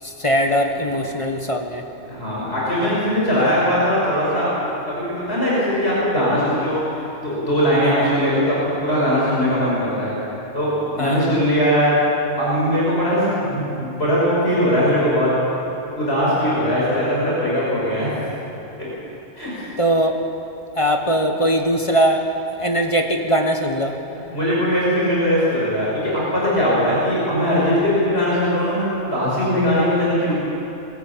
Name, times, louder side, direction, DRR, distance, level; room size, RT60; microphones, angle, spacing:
voice 1, 0.0-1.8 7.8-8.1 11.0-11.4 19.8-20.1 20.7-22.3 22.6-24.0, equal, 25° left, 4 dB, 1.4 m, -20 dB
voice 2, 2.1-6.8 7.2-10.1 10.5-12.0 12.4-15.3 15.9-18.1 19.4-19.6 24.1-30.3, equal, 55° left, -7 dB, 5.9 m, -20 dB
21.5 x 14.0 x 8.7 m, 3.0 s
omnidirectional pair, 1.3 m